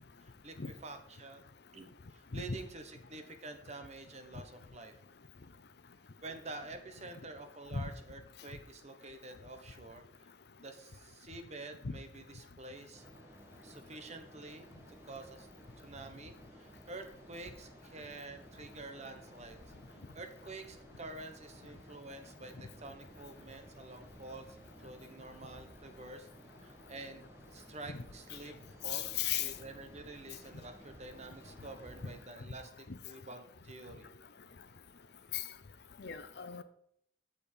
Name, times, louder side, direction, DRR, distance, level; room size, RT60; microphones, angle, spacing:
voice 1, 0.2-4.9 6.2-10.0 10.6-13.0 13.6-14.7 15.0-15.5 15.8-19.6 19.9-26.3 26.6-27.2 27.5-28.5 28.8-34.1, right 2 dB, 40° right, 7 dB, 1.1 m, -48 dB
sound 1, 12.9-32.2, equal, 15° right, 1.5 m, -56 dB
voice 2, 28.9-29.5 35.3-35.4 36.0-36.6, left 9 dB, 65° left, 12 dB, 0.7 m, -35 dB
8.5 x 7.2 x 4.5 m, 0.69 s
head